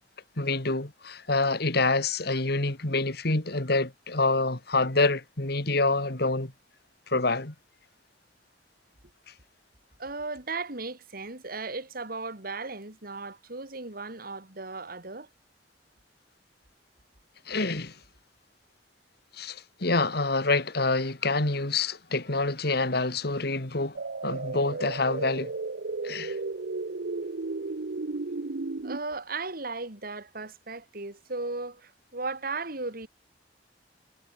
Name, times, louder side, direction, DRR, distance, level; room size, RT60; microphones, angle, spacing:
voice 1, 0.4-6.5 7.1-7.5 17.5-17.9 19.4-24.0 24.2-25.5 26.0-26.4, left 3 dB, 65° left, 2.6 m, -27 dB
voice 2, 10.0-15.3 28.8-33.1, right 3 dB, 55° right, 3.7 m, -36 dB
sound 1, 24.0-29.0, right 3 dB, 70° right, 0.8 m, -34 dB
head